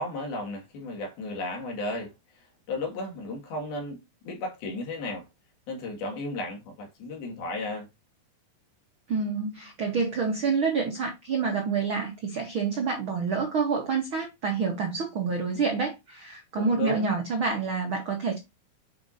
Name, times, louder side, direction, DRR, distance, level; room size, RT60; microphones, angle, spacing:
voice 1, 0.0-5.3 5.7-7.9 16.6-17.1, left 2 dB, 85° left, 3.9 m, -34 dB
voice 2, 9.1-18.4, right 5 dB, 85° right, 1.1 m, -28 dB
7.9 x 4.9 x 2.7 m
omnidirectional pair, 4.2 m